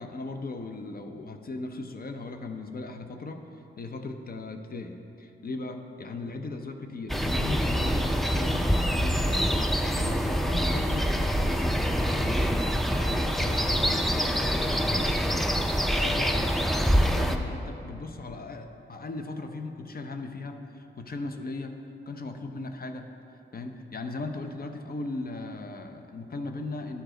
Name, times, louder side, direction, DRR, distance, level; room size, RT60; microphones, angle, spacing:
voice 1, 0.0-12.7 13.0-21.8 22.1-23.1 23.5-27.0, left 3 dB, 50° left, 6 dB, 0.6 m, -38 dB
sound 1, 7.1-17.4, equal, ahead, 0.4 m, -25 dB
12.0 x 4.9 x 3.8 m, 2.8 s
wide cardioid pair, 110°, 20 cm